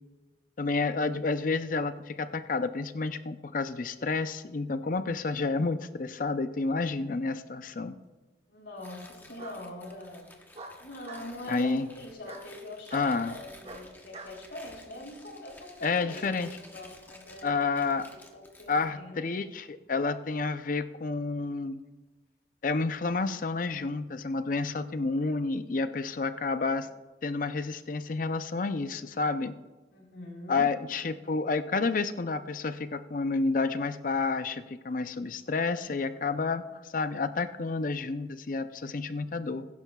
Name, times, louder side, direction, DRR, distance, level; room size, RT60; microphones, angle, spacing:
voice 1, 0.6-8.0 11.5-11.9 12.9-13.3 15.8-16.5 17.4-18.1 18.7-21.8 22.6-26.9 27.2-29.5 30.5-39.7, left 4 dB, 50° left, 11 dB, 0.5 m, -30 dB
Bark, 7.2-7.8 9.4-9.6 10.5-11.3 12.2-12.5 12.9-13.1 13.6-14.3, right 2 dB, 35° right, 1.1 m, -45 dB
voice 2, 8.5-10.3 10.8-17.6 18.1-19.2 29.9-30.7, left 1 dB, 80° left, -1 dB, 3.4 m, -43 dB
Tearing, 8.8-18.9, left 2 dB, 10° left, 1.0 m, -53 dB
21.0 x 10.5 x 2.3 m, 1.2 s
head